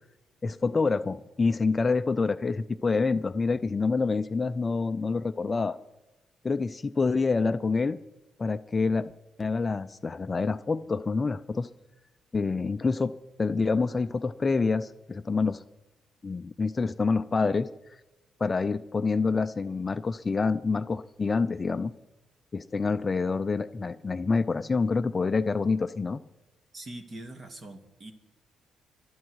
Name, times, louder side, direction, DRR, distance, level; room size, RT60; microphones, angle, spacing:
voice 1, 0.4-5.8 6.4-8.0 8.4-9.1 9.4-11.7 12.3-13.1 13.4-15.6 16.2-17.7 18.4-21.9 22.5-26.2, left 4 dB, 25° left, 11 dB, 0.5 m, -27 dB
voice 2, 26.7-28.1, right 1 dB, 30° right, 8 dB, 1.9 m, -42 dB
25.5 x 8.7 x 4.8 m, 1.1 s
cardioid pair, 125°, 0 cm